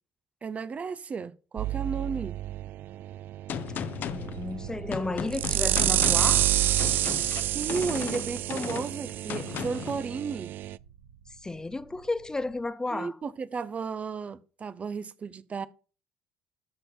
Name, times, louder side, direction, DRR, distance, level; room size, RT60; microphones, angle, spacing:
voice 1, 0.4-2.4 7.5-10.5 12.9-15.7, right 5 dB, 35° right, 0.7 m, -34 dB
sound 1, 1.6-10.8, right 13 dB, 60° right, 0.3 m, -29 dB
Gunshot gunfire, 3.5-10.0, left 9 dB, 55° left, 0.9 m, -36 dB
voice 2, 4.1-6.5 11.4-13.2, left 2 dB, 15° left, 0.6 m, -33 dB
sound 2, 4.1-12.6, right 8 dB, 80° right, 1.6 m, -49 dB
13.0 x 4.4 x 4.9 m
hypercardioid pair, 65°, 4 cm